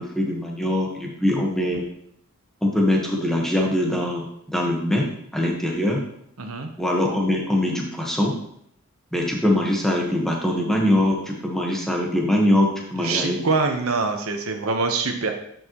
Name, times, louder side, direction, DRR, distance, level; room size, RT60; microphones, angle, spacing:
voice 1, 0.0-1.8 2.6-6.0 6.8-8.3 9.1-13.4, left 1 dB, ahead, -1 dB, 1.3 m, -22 dB
voice 2, 6.4-6.7 13.0-15.3, right 4 dB, 70° right, 5 dB, 1.0 m, -24 dB
10.0 x 5.5 x 3.0 m, 0.72 s
head